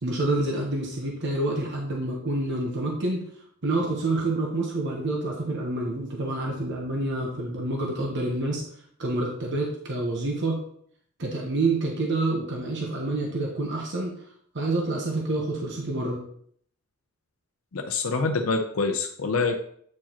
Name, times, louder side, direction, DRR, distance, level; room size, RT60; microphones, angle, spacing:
voice 1, 0.0-3.3 3.6-8.6 9.0-10.6 11.2-14.1 14.5-16.2, right 2 dB, 60° right, -1 dB, 1.0 m, -27 dB
voice 2, 17.7-19.6, left 4 dB, 90° left, 4 dB, 0.6 m, -26 dB
8.5 x 4.7 x 2.9 m, 0.64 s
head